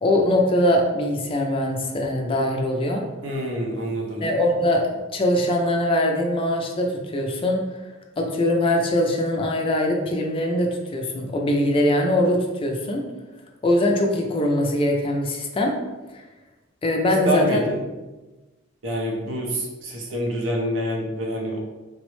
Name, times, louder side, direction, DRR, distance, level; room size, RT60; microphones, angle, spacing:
voice 1, 0.0-3.0 4.2-7.6 8.2-13.0 13.6-15.7 16.1-16.2 16.8-17.6, left 1 dB, 25° left, 1 dB, 0.4 m, -22 dB
voice 2, 3.2-4.3 17.2-17.8 18.8-21.6, equal, 75° right, 0 dB, 0.6 m, -26 dB
3.3 x 2.0 x 3.0 m, 1.1 s
head